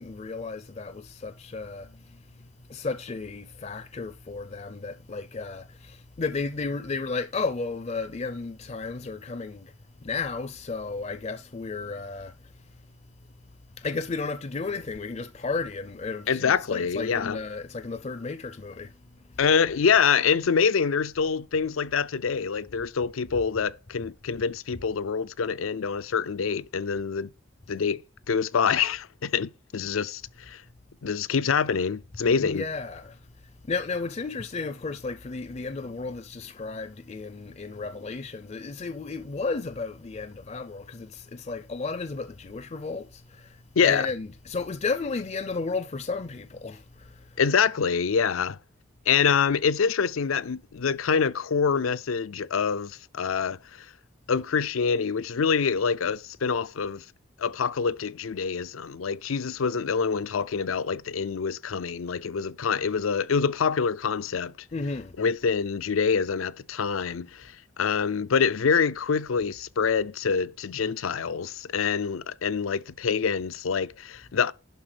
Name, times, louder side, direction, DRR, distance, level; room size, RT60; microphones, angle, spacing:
voice 1, 0.0-9.7 10.0-12.5 13.8-18.9 19.3-19.4 32.4-33.2 33.6-47.4 64.7-65.1, left 4 dB, 30° left, 0.4 m, -33 dB
voice 2, 16.3-17.4 19.4-27.3 27.7-28.0 28.3-30.6 31.0-32.6 43.8-44.1 47.4-48.6 49.1-53.9 54.3-57.0 57.4-64.5 65.2-74.5, left 6 dB, 85° left, 0.5 m, -26 dB
11.5 x 4.0 x 6.0 m
head